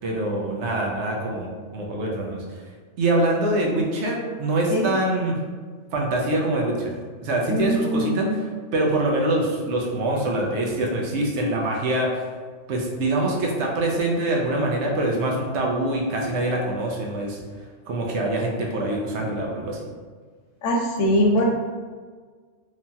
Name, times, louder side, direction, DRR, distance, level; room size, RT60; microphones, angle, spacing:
voice 1, 0.0-2.4 3.0-5.4 5.9-8.3 8.7-12.2 12.7-17.4 17.9-19.8, right 1 dB, 75° right, -1 dB, 0.9 m, -24 dB
voice 2, 7.5-8.4 20.6-21.4, equal, 85° left, -1 dB, 1.0 m, -22 dB
3.0 x 2.6 x 2.2 m, 1.5 s
omnidirectional pair, 1.3 m